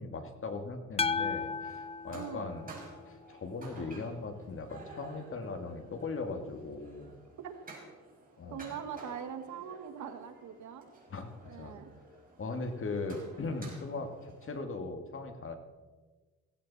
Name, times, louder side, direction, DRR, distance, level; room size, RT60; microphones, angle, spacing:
voice 1, 0.0-2.7 3.1-7.1 8.4-8.7 11.1-11.8 12.4-15.6, left 3 dB, 45° left, 6 dB, 2.1 m, -39 dB
sound 1, 1.0-3.2, left 5 dB, 20° left, 0.4 m, -35 dB
sound 2, 1.0-14.6, right 2 dB, 30° right, 5.6 m, -53 dB
voice 2, 2.1-2.5 7.4-7.5 8.5-10.9 11.5-11.9, right 7 dB, 70° right, 5 dB, 1.7 m, -42 dB
17.0 x 15.5 x 4.2 m, 1.3 s
cardioid pair, 90°, 30 cm